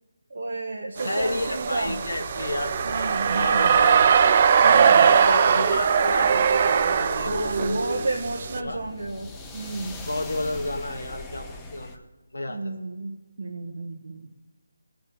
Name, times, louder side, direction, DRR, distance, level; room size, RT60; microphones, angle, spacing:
voice 1, 0.3-2.0 2.8-3.8 4.6-5.1 7.3-10.0 12.5-14.3, right 2 dB, 60° right, -1 dB, 1.4 m, -32 dB
voice 2, 1.0-2.7 3.3-4.0 5.0-8.1 8.6-8.8 10.0-12.0 12.3-12.6, left 2 dB, 90° left, 2 dB, 2.0 m, -31 dB
sound 1, 1.0-8.6, right 7 dB, 35° right, 0.5 m, -20 dB
sound 2, 1.2-12.0, left 2 dB, 10° left, 0.9 m, -41 dB
18.0 x 6.3 x 7.2 m, 1.1 s
figure-of-eight pair, 160°, 0 cm